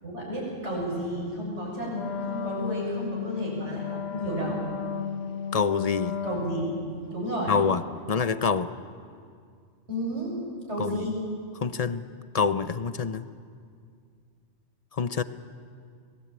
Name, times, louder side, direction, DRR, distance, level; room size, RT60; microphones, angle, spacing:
voice 1, 0.0-4.6 6.2-6.7 7.1-7.5 9.9-10.4 10.7-11.2, right 1 dB, 75° right, -3 dB, 7.7 m, -32 dB
Wind instrument woodwind instrument, 1.9-7.0, left 7 dB, 60° left, 1.4 m, -34 dB
voice 2, 5.5-6.2 7.5-7.8 8.1-8.7 10.8-10.9 11.6-12.0 12.3-13.3 14.9-15.2, left 5 dB, 35° left, 12 dB, 0.8 m, -26 dB
26.0 x 19.0 x 9.0 m, 2.2 s
omnidirectional pair, 1.2 m